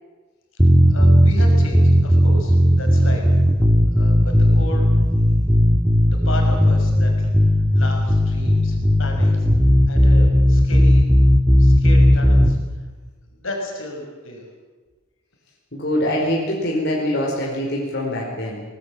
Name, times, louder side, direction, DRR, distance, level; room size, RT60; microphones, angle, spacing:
sound 1, 0.6-12.5, equal, 10° right, 1.6 m, -15 dB
voice 1, 0.9-3.3 3.9-4.9 6.1-7.3 7.7-9.5 9.9-11.0 11.6-12.6 13.3-14.5, left 1 dB, 70° left, 2 dB, 5.8 m, -33 dB
voice 2, 15.7-18.6, left 1 dB, 50° left, -3 dB, 4.8 m, -23 dB
24.0 x 20.0 x 7.6 m, 1.3 s
head